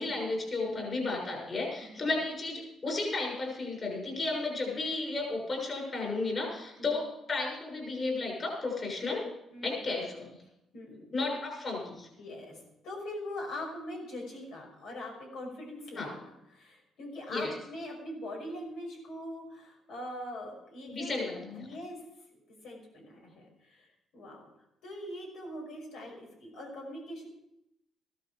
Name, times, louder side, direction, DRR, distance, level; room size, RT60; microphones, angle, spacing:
voice 1, 0.0-9.2 9.6-10.4 11.1-12.1 15.9-16.1 17.3-17.5 20.9-21.7, left 3 dB, 40° left, 0 dB, 6.6 m, -33 dB
voice 2, 0.7-1.0 1.8-2.1 6.8-7.0 9.5-9.9 10.7-11.3 12.2-21.2 21.5-22.0 22.3-24.5 24.8-27.3, left 1 dB, 85° left, 0 dB, 5.9 m, -42 dB
15.0 x 12.5 x 5.0 m, 0.82 s
cardioid pair, 90°, 0 cm